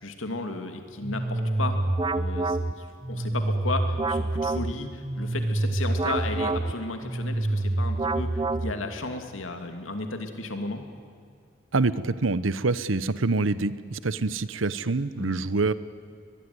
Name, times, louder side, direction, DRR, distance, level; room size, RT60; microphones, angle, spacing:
voice 1, 0.0-1.8 2.1-10.8 15.2-15.4, left 2 dB, 90° left, 6 dB, 2.7 m, -34 dB
sound 1, 1.0-9.1, right 2 dB, 25° right, 0.7 m, -27 dB
Keyboard (musical), 1.2-3.3, left 1 dB, 50° left, 7.6 m, -49 dB
voice 2, 11.7-15.7, right 3 dB, 85° right, 16 dB, 0.9 m, -26 dB
23.0 x 21.0 x 9.7 m, 2.2 s
head